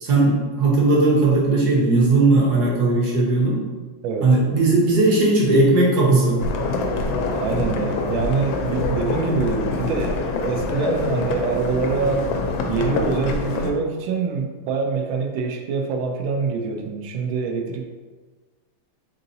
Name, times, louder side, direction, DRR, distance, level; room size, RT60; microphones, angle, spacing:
voice 1, 0.0-3.6 4.2-6.4, right 2 dB, 60° right, -3 dB, 1.3 m, -17 dB
sound 1, 6.4-13.7, left 3 dB, 80° left, 1.3 m, -25 dB
voice 2, 7.3-12.3 12.7-17.9, right 4 dB, 85° right, 3 dB, 1.4 m, -25 dB
4.1 x 3.8 x 2.7 m, 1.4 s
omnidirectional pair, 2.2 m